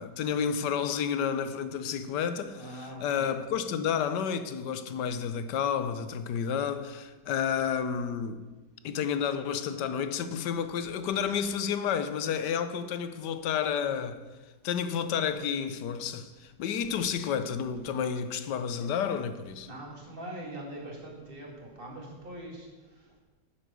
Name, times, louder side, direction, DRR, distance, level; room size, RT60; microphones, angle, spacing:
voice 1, 0.0-8.4 8.8-14.2 14.6-19.7, left 7 dB, 85° left, 1.4 m, -31 dB
voice 2, 2.5-3.4 19.6-22.7, right 1 dB, 30° right, 2.4 m, -42 dB
9.8 x 7.4 x 6.9 m
omnidirectional pair, 1.8 m